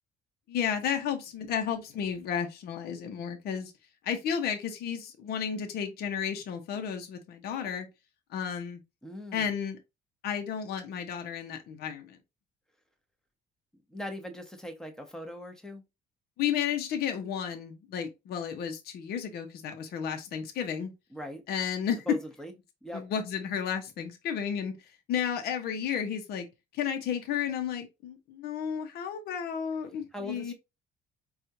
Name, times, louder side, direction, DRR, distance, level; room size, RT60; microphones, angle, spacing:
voice 1, 0.5-3.7 4.0-7.9 8.3-8.8 9.3-9.8 10.2-12.2 16.4-20.9 21.5-22.2 22.9-26.5 26.7-30.5, left 8 dB, 65° left, 0.8 m, -32 dB
voice 2, 9.0-9.5 13.9-15.8 21.1-21.4 22.1-22.5 22.8-23.1 30.1-30.5, equal, 5° left, 0.9 m, -40 dB
4.3 x 2.4 x 2.7 m
cardioid pair, 110°, 17 cm